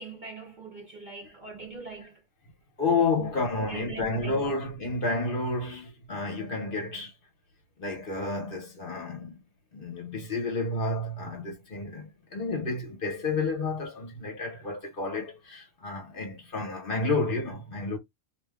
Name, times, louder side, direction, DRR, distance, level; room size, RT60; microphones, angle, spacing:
voice 1, 0.0-2.1 3.2-3.3 3.6-4.6, right 4 dB, 45° right, 0.7 m, -41 dB
voice 2, 2.8-7.1 7.8-9.4 9.7-18.0, left 3 dB, 45° left, 1.1 m, -30 dB
2.9 x 2.1 x 3.5 m
omnidirectional pair, 1.3 m